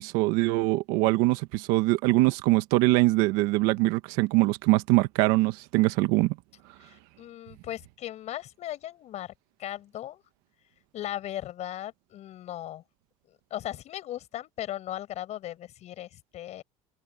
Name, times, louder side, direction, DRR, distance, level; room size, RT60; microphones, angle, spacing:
voice 1, 0.0-6.3, right 20 dB, 80° right, 1.2 m, -23 dB
voice 2, 6.8-9.3 9.6-10.2 10.9-12.8 13.5-16.6, left 12 dB, 50° left, 6.8 m, -37 dB
cardioid pair, 130°, 15 cm